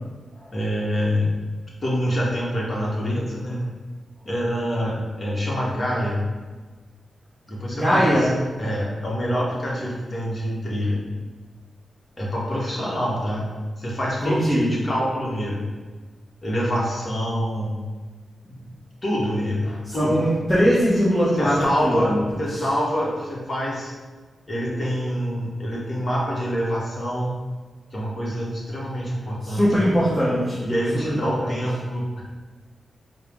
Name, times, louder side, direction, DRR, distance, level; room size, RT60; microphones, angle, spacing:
voice 1, 0.5-1.4 1.8-3.7 4.2-6.2 7.5-8.3 8.6-11.0 12.2-13.5 13.8-15.7 16.4-17.7 18.5-18.7 19.0-20.2 21.3-23.9 24.5-27.4 27.9-29.7 30.6-32.2, equal, 35° left, -4 dB, 1.0 m, -26 dB
voice 2, 7.7-8.4 14.2-14.8 19.9-22.2 29.4-30.7 31.0-31.6, equal, 10° left, -8 dB, 0.8 m, -21 dB
4.4 x 2.0 x 3.5 m, 1.4 s
wide cardioid pair, 95°, 0 cm